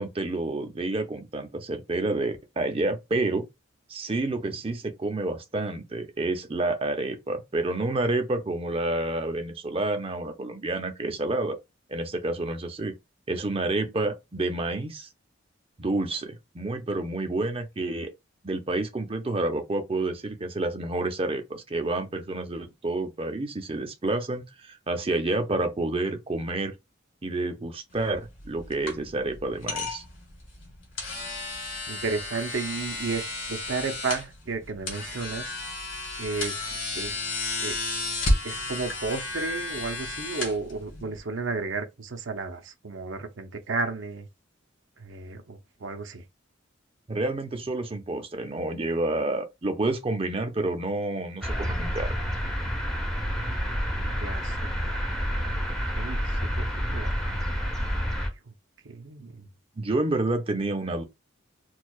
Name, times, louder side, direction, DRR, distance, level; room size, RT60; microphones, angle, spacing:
voice 1, 0.0-3.5 3.9-11.6 11.9-12.9 13.3-15.1 15.8-18.1 18.4-26.7 27.2-30.0 47.1-52.1 59.8-61.0, right 2 dB, 30° right, 0.6 m, -29 dB
sound 1, 27.9-41.2, left 2 dB, 85° left, 1.7 m, -32 dB
voice 2, 31.9-35.6 36.2-37.2 37.6-37.8 38.4-44.3 45.0-46.2 54.0-55.7 55.9-58.5 58.8-59.5, right 4 dB, 65° right, 0.7 m, -34 dB
sound 2, 51.4-58.3, equal, 5° left, 0.8 m, -29 dB
4.4 x 2.4 x 2.3 m
head